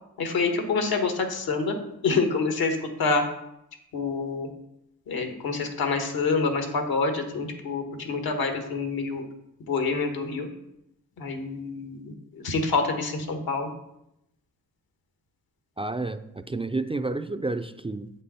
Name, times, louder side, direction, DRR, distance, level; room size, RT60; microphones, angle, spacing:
voice 1, 0.2-1.7 2.0-3.2 3.9-4.5 5.1-9.2 9.6-10.5 11.2-12.0 12.3-13.7, left 4 dB, 80° left, 5 dB, 1.4 m, -27 dB
voice 2, 15.8-18.1, right 2 dB, 15° right, 8 dB, 0.4 m, -30 dB
7.8 x 5.4 x 4.2 m, 0.82 s
cardioid pair, 70°, 36 cm